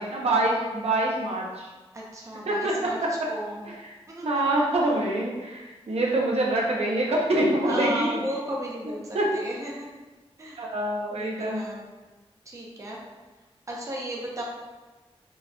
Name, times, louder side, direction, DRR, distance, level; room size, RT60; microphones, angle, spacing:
voice 1, 0.0-1.7 2.5-3.1 3.7-3.9 4.2-8.2 9.1-9.3 10.6-11.6, right 1 dB, 75° right, -2 dB, 0.7 m, -25 dB
voice 2, 1.9-3.0 3.3-3.7 4.1-4.4 7.6-9.9 10.4-10.6 11.1-11.8 12.5-13.0 13.7-14.4, right 1 dB, 30° right, -3 dB, 0.6 m, -34 dB
4.5 x 2.9 x 2.2 m, 1.2 s
wide cardioid pair, 120°, 11 cm